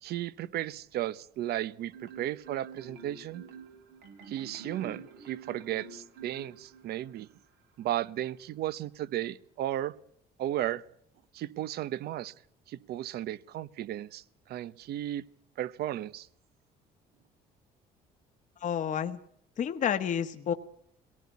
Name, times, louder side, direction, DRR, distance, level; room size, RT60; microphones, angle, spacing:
voice 1, 0.0-3.4 4.3-7.3 7.8-9.9 10.4-10.8 11.3-12.3 12.7-15.3 15.6-16.3, right 13 dB, 70° right, 18 dB, 0.9 m, -35 dB
Marimba xylophone, 1.9-7.1, right 4 dB, 85° right, 4.9 m, -47 dB
voice 2, 18.6-19.2 19.6-20.5, left 8 dB, 50° left, 8 dB, 1.2 m, -30 dB
23.0 x 18.5 x 8.3 m, 0.71 s
cardioid pair, 110°, 17 cm